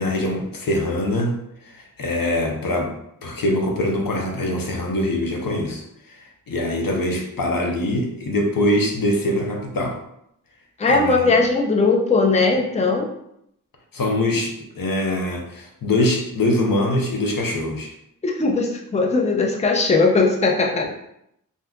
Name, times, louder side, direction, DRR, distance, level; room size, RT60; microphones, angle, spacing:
voice 1, 0.0-1.3 1.6-2.9 3.2-10.0 10.9-11.3 13.9-17.9, left 1 dB, 80° left, 1 dB, 0.7 m, -23 dB
voice 2, 10.8-13.1 18.2-20.8, left 3 dB, 20° left, 1 dB, 0.5 m, -19 dB
2.7 x 2.3 x 3.5 m, 0.76 s
wide cardioid pair, 80°, 34 cm